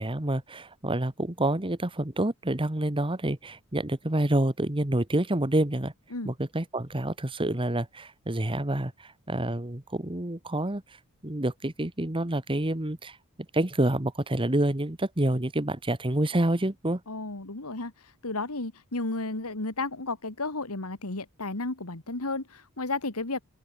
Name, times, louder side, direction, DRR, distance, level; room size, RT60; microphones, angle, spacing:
voice 1, 0.0-5.9 6.2-10.8 11.2-13.2 13.5-17.0, right 1 dB, 25° right, 1.6 m, -28 dB
voice 2, 17.1-17.9 18.2-23.4, left 2 dB, 80° left, 2.4 m, -33 dB
open air
head